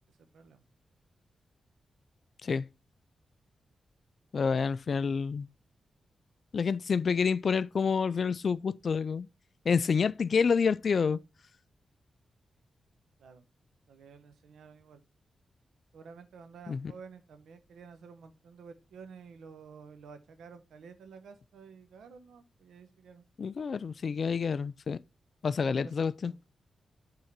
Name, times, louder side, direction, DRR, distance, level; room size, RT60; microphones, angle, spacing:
voice 1, 0.1-0.6 13.2-13.4 13.9-15.0 15.9-23.2 25.6-26.4, right 5 dB, 85° right, 0.9 m, -51 dB
voice 2, 4.3-5.5 6.5-9.3 9.7-11.2 16.7-16.8 23.4-25.0 25.4-26.3, left 5 dB, 65° left, 0.3 m, -28 dB
7.6 x 3.7 x 5.9 m
supercardioid pair, 50°, 0 cm